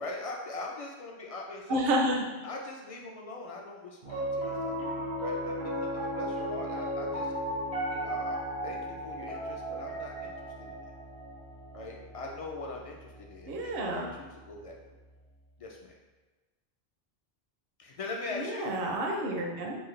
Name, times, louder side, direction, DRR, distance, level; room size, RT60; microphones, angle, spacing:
voice 1, 0.0-1.9 2.4-4.8 5.2-7.3 7.9-8.4 8.6-10.8 11.7-14.9 15.6-15.9 17.8-18.8, left 2 dB, 55° left, -1 dB, 0.4 m, -41 dB
voice 2, 1.7-2.2 13.5-14.1 18.3-19.8, right 1 dB, 65° right, 1 dB, 0.8 m, -30 dB
Piano, 4.0-14.4, right 1 dB, 85° right, 1.1 m, -36 dB
4.5 x 2.2 x 3.1 m, 1.2 s
omnidirectional pair, 1.1 m